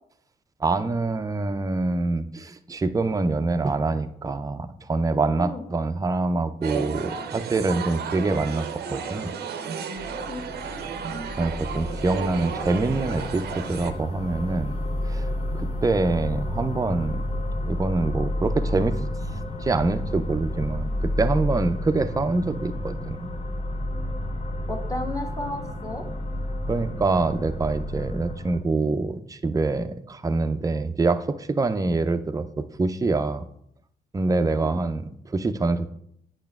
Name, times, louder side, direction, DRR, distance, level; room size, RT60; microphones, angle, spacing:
voice 1, 0.6-9.3 11.4-14.8 15.1-15.3 15.5-17.2 17.6-19.0 19.6-20.9 21.2-23.3 26.7-33.4 34.1-35.9, right 3 dB, 20° right, 9 dB, 0.5 m, -25 dB
sound 1, 6.6-13.9, right 6 dB, 70° right, 0.6 m, -33 dB
sound 2, 10.0-28.6, left 1 dB, 45° left, 1.7 m, -31 dB
voice 2, 10.3-11.3 24.7-26.0 34.5-34.8, left 1 dB, 20° left, 1 dB, 1.3 m, -34 dB
8.6 x 5.7 x 2.3 m, 0.71 s
supercardioid pair, 50°, 18 cm